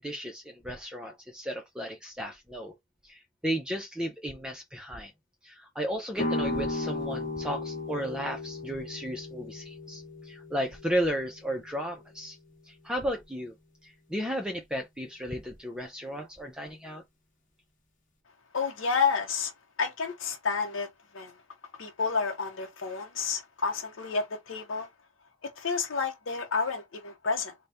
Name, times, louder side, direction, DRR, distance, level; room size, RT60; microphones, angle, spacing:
voice 1, 0.0-2.8 3.0-5.1 5.4-12.4 12.6-13.5 13.8-17.0, equal, 5° right, 0.5 m, -34 dB
sound 1, 6.2-11.9, left 2 dB, 45° left, 1.1 m, -35 dB
voice 2, 18.5-19.5 19.8-20.9 21.1-21.3 21.7-24.9 25.4-27.5, left 5 dB, 85° left, 0.7 m, -30 dB
4.0 x 2.2 x 3.4 m
head